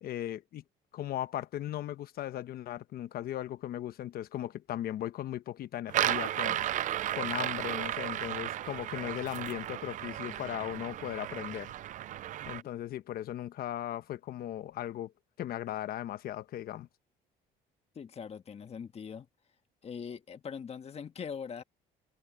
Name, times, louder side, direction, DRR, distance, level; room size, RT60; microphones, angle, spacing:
voice 1, 0.0-0.6 0.9-6.7 7.1-11.7 12.5-15.1 15.4-16.9, left 12 dB, 65° left, 1.1 m, -37 dB
sound 1, 5.9-12.6, right 12 dB, 50° right, 0.4 m, -34 dB
voice 2, 17.9-19.3 19.8-21.6, left 6 dB, 40° left, 1.6 m, -41 dB
cardioid pair, 110°, 17 cm